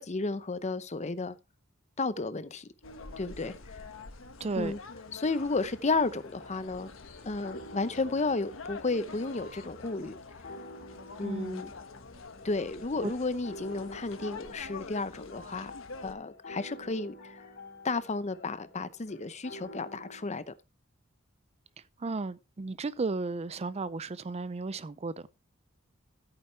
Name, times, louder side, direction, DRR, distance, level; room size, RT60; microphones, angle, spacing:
voice 1, 0.0-1.4 2.0-2.7 3.2-3.5 4.6-4.8 5.1-6.9 7.2-10.2 11.2-11.7 12.4-15.7 16.0-17.4 17.8-20.5, left 3 dB, 35° left, 0.7 m, -32 dB
sound 1, 2.8-16.1, left 4 dB, 75° left, 1.4 m, -46 dB
voice 2, 4.4-4.7 11.2-11.6 13.0-13.1 22.0-25.3, right 3 dB, 30° right, 0.5 m, -34 dB
sound 2, 5.8-20.2, left 1 dB, 55° left, 3.2 m, -50 dB
14.0 x 8.8 x 3.2 m
head